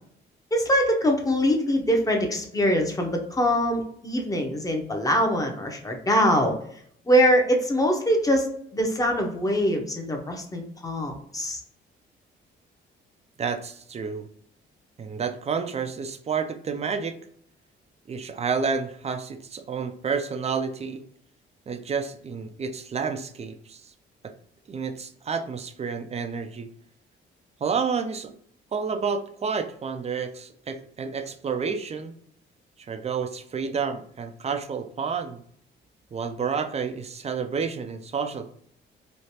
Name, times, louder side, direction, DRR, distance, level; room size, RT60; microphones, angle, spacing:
voice 1, 0.5-6.6 7.1-11.6, equal, 15° left, 2 dB, 0.8 m, -23 dB
voice 2, 13.4-14.3 15.0-17.2 18.1-21.0 21.7-23.9 24.2-24.3 24.7-26.7 27.6-28.3 28.7-32.1 32.8-35.4 36.1-38.5, right 5 dB, 35° right, 8 dB, 0.4 m, -30 dB
3.2 x 2.5 x 2.8 m, 0.64 s
cardioid pair, 90°, 20 cm